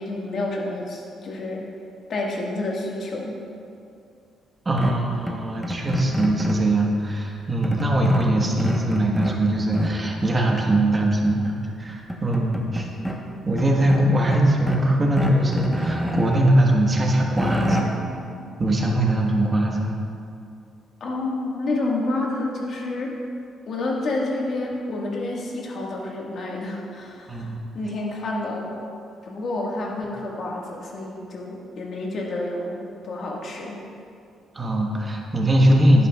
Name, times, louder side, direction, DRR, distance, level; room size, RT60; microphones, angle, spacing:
voice 1, 0.0-1.6 2.1-3.4 21.0-23.2 23.7-28.8 29.2-33.8, left 2 dB, 60° left, -2 dB, 1.7 m, -29 dB
voice 2, 4.6-12.9 13.4-17.9 18.6-19.9 27.3-27.6 34.5-36.1, right 1 dB, 30° right, 0 dB, 1.3 m, -21 dB
sound 1, 4.8-6.7 7.6-9.4 9.7-10.2 11.5-11.6 11.9-13.2 13.6-14.9 15.2-16.4 16.9-17.8, equal, 5° left, 1.0 m, -28 dB
10.5 x 9.8 x 2.4 m, 2.5 s
cardioid pair, 90°, 0 cm